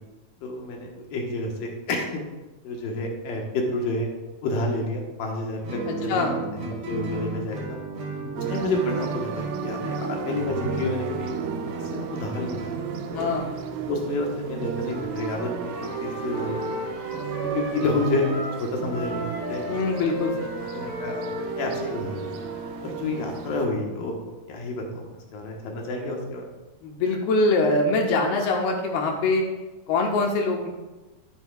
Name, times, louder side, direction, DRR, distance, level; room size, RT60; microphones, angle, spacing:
voice 1, 0.4-2.2 2.6-4.1 4.4-7.8 8.3-11.3 11.9-12.7 13.1-13.3 13.9-16.9 17.5-19.8 20.0-20.1 20.7-21.2 21.6-22.3 22.8-26.4, left 2 dB, 70° left, 0 dB, 2.7 m, -29 dB
Guitar, 5.6-13.1, right 3 dB, 40° right, 1.6 m, -34 dB
voice 2, 5.9-6.4 8.1-8.4 13.1-13.5 19.7-20.7 26.8-29.5 29.9-30.7, left 2 dB, 90° left, 1 dB, 3.1 m, -24 dB
sound 1, 8.4-23.7, right 7 dB, 80° right, 2.3 m, -34 dB
Wind instrument woodwind instrument, 14.8-18.6 18.9-22.9, left 1 dB, 25° left, 2.5 m, -35 dB
10.5 x 10.5 x 2.3 m, 1.1 s
omnidirectional pair, 4.3 m